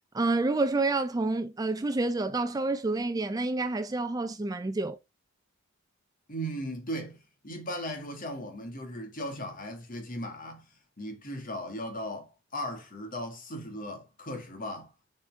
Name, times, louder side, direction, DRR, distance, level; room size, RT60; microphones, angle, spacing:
voice 1, 0.1-5.0, right 2 dB, 15° right, 0.3 m, -28 dB
voice 2, 6.3-10.7 11.0-14.9, equal, 40° left, 1.9 m, -37 dB
7.5 x 4.3 x 3.5 m
head